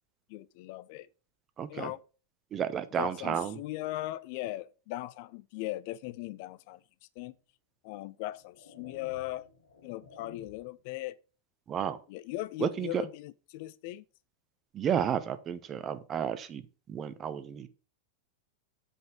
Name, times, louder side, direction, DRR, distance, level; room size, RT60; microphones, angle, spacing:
voice 1, 0.3-1.1 1.7-2.0 3.0-6.8 7.2-7.3 7.8-9.5 9.8-11.2 12.1-14.0, left 16 dB, 45° left, 0.4 m, -38 dB
voice 2, 1.6-1.9 2.5-3.6 11.7-12.0 12.6-13.0 14.7-17.7, right 8 dB, 25° right, 0.8 m, -32 dB
sound 1, 7.2-7.3 8.1-10.8, left 5 dB, 60° left, 1.6 m, -55 dB
7.9 x 5.4 x 5.0 m
figure-of-eight pair, 90°, 0 cm